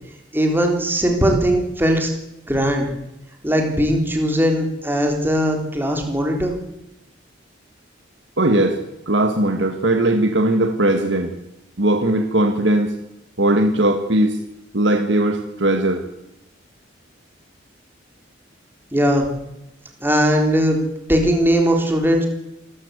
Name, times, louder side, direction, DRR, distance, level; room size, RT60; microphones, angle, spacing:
voice 1, 0.3-2.1 2.5-2.9 3.4-6.5 18.9-19.3 20.0-20.8 21.1-22.3, equal, 10° right, 2 dB, 3.7 m, -19 dB
voice 2, 8.4-8.8 9.1-11.3 11.8-13.0 13.4-14.4 14.7-16.1, right 1 dB, 65° right, 5 dB, 2.0 m, -18 dB
27.0 x 14.0 x 8.3 m, 0.88 s
head